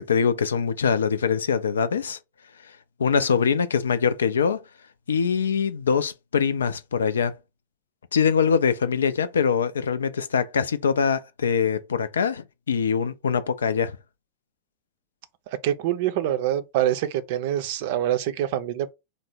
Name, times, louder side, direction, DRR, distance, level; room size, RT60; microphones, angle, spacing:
voice 1, 0.0-2.2 3.0-4.6 5.1-7.4 8.1-14.0, left 6 dB, 70° left, 0.3 m, -23 dB
voice 2, 15.5-18.9, right 11 dB, 50° right, 0.5 m, -25 dB
3.3 x 2.0 x 4.1 m
figure-of-eight pair, 90°, 0 cm